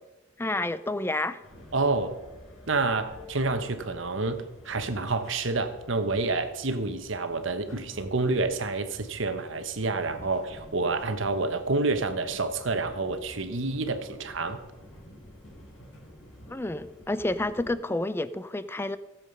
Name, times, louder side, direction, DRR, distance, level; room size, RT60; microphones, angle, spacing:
voice 1, 0.4-1.4 16.5-19.0, left 2 dB, 10° left, 14 dB, 0.4 m, -29 dB
sound 1, 1.4-17.7, left 1 dB, 80° left, 3.3 m, -49 dB
voice 2, 1.7-2.1 2.7-14.6, right 3 dB, 65° right, 9 dB, 1.1 m, -28 dB
16.0 x 7.6 x 5.4 m, 1.1 s
head